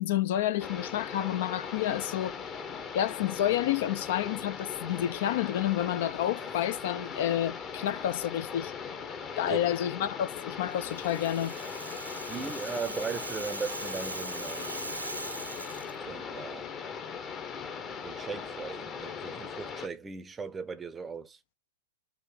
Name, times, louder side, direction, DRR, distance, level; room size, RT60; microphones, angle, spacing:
voice 1, 0.0-2.5 2.9-8.7 9.4-11.6, left 12 dB, 50° left, 0.4 m, -29 dB
sound 1, 0.6-19.9, left 6 dB, 25° left, 0.8 m, -39 dB
Rattle (instrument), 10.7-15.9, right 2 dB, 85° right, 0.5 m, -40 dB
voice 2, 12.3-14.9 16.1-16.7 18.0-21.4, right 5 dB, 15° right, 0.6 m, -38 dB
4.5 x 2.6 x 3.8 m
figure-of-eight pair, 100°, 0 cm